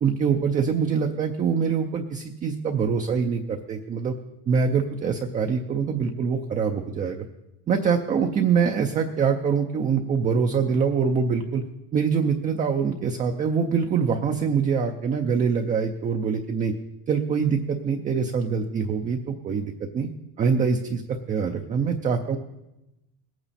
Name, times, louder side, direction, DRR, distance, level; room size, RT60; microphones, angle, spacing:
voice 1, 0.0-4.1 4.5-7.3 7.7-11.6 11.9-16.7 17.1-20.1 20.4-22.4, right 6 dB, 20° right, 4 dB, 0.5 m, -24 dB
20.0 x 8.9 x 4.1 m, 0.94 s
cardioid pair, 165°, 40 cm